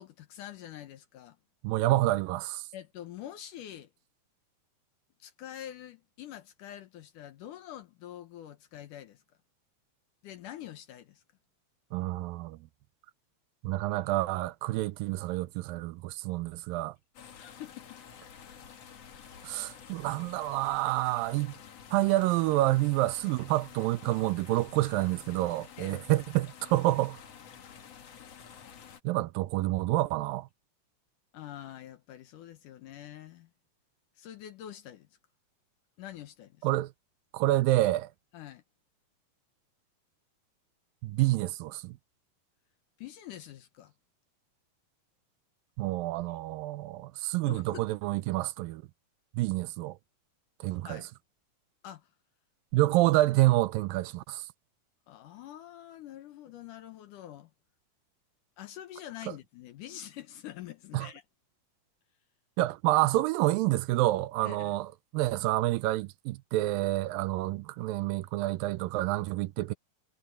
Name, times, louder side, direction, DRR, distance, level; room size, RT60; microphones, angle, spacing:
voice 1, 0.0-1.4 2.7-3.9 5.2-9.2 10.2-11.2 17.4-18.0 25.8-26.1 31.3-33.5 34.2-35.1 36.0-36.7 38.3-38.6 43.0-43.9 47.4-47.9 50.6-51.1 51.8-52.1 55.1-57.5 58.6-61.2 64.4-64.8, left 12 dB, 70° left, 2.5 m, -45 dB
voice 2, 1.6-2.6 11.9-12.6 13.6-16.9 19.4-21.5 21.9-27.2 29.0-30.5 36.6-36.9 37.3-38.1 41.0-41.9 45.8-48.8 49.4-50.0 50.6-51.0 52.7-54.5 60.9-61.1 62.6-64.9 65.1-69.7, right 17 dB, 85° right, 2.4 m, -28 dB
sound 1, 17.1-29.0, left 7 dB, 50° left, 2.7 m, -50 dB
omnidirectional pair, 4.0 m